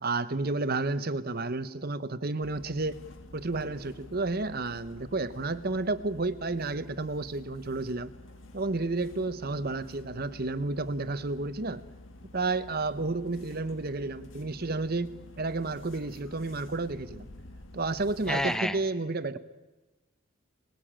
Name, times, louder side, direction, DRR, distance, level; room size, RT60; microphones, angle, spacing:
voice 1, 0.0-3.0 3.3-8.1 8.5-11.8 12.3-17.3 17.7-19.4, right 3 dB, 45° right, 13 dB, 1.0 m, -31 dB
sound 1, 2.4-18.6, left 1 dB, 65° left, 1.9 m, -49 dB
voice 2, 18.3-18.8, equal, 5° left, 10 dB, 1.0 m, -28 dB
25.5 x 20.5 x 8.8 m, 1.2 s
head